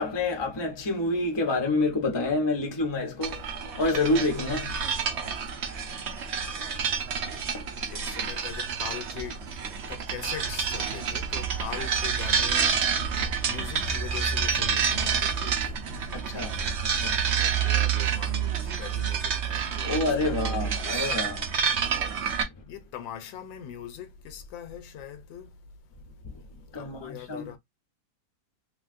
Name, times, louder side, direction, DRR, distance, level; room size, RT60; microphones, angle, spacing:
voice 1, 0.0-6.2 6.5-8.0 13.2-13.3 16.1-17.2 19.8-21.5 22.1-22.2 26.2-26.4 26.7-27.5, left 2 dB, 35° left, 0.4 m, -29 dB
sound 1, 3.2-22.4, right 7 dB, 85° right, 0.6 m, -28 dB
voice 2, 7.9-15.8 16.4-16.5 17.3-21.1 22.7-25.6 26.3-27.6, left 9 dB, 80° left, 1.4 m, -41 dB
3.1 x 3.0 x 2.4 m
omnidirectional pair, 2.1 m